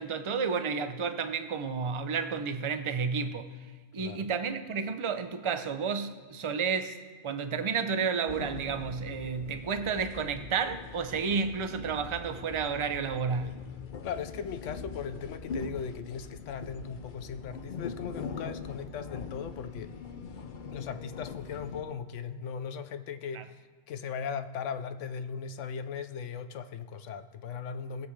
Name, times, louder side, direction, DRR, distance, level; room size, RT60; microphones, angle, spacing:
voice 1, 0.0-3.5 3.9-7.0 7.2-13.6 23.3-23.4, right 5 dB, 40° right, 0.5 m, -31 dB
voice 2, 4.0-4.3 14.0-19.9 20.7-28.1, left 6 dB, 80° left, 1.0 m, -38 dB
sound 1, 8.3-21.8, left 5 dB, 50° left, 0.7 m, -42 dB
20.0 x 7.8 x 3.2 m
omnidirectional pair, 1.3 m